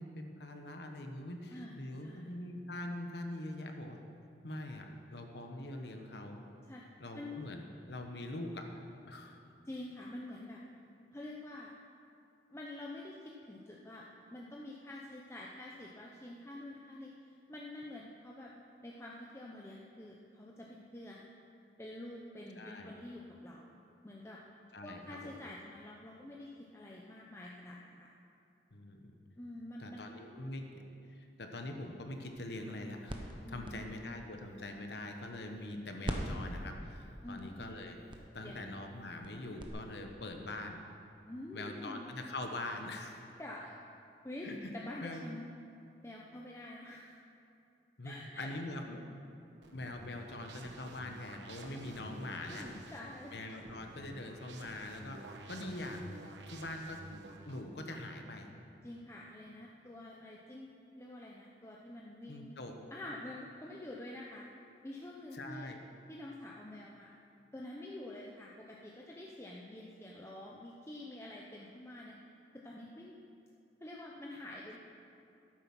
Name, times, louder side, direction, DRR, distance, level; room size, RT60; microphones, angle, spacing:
voice 1, 0.0-4.0 4.4-6.4 7.0-9.4 22.5-22.9 24.7-25.3 28.7-29.2 29.8-30.8 31.1-38.0 38.3-40.8 41.5-43.3 44.4-44.7 45.0-45.2 48.0-49.0 49.7-52.7 53.3-55.2 55.5-56.2 56.5-57.0 57.4-58.5 62.3-62.7 65.3-65.8, left 1 dB, 70° left, 4 dB, 1.1 m, -43 dB
voice 2, 1.5-2.3 6.7-6.8 7.1-7.4 9.7-10.6 11.1-11.7 12.5-18.5 18.8-21.2 21.8-23.7 24.0-24.4 24.8-28.1 29.4-30.1 33.4-34.1 37.2-37.6 38.4-38.7 41.3-42.1 43.4-43.8 44.2-44.5 44.7-45.5 46.0-47.2 48.0-48.5 52.5-53.3 58.8-62.6 62.9-64.5 64.8-65.7 66.1-67.2 67.5-72.1 72.5-73.1 73.8-74.8, left 1 dB, 15° left, -3 dB, 0.7 m, -47 dB
sound 1, 32.1-35.7 36.0-39.7, right 1 dB, 30° right, 1.0 m, -44 dB
sound 2, 49.6-57.6, right 1 dB, 85° right, 1.1 m, -51 dB
12.5 x 9.1 x 6.1 m, 2.6 s
head